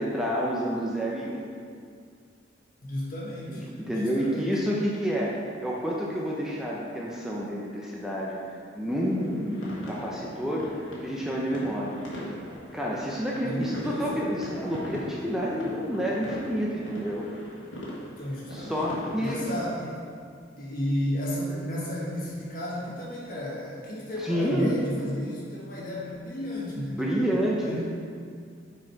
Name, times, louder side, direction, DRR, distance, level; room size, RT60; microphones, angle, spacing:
voice 1, 0.0-1.5 3.5-5.3 5.6-8.4 8.7-10.7 11.0-12.0 12.7-17.3 18.5-19.4 24.2-24.8 26.8-27.8, equal, 5° right, -4 dB, 0.6 m, -29 dB
voice 2, 2.8-3.7 3.9-4.5 13.4-14.3 18.2-18.9 19.2-20.0 20.6-27.1 27.6-27.8, left 1 dB, 50° left, -5 dB, 1.4 m, -33 dB
sound 1, 9.0-19.6, equal, 75° left, 1.5 m, -40 dB
6.1 x 4.6 x 4.6 m, 2.2 s
head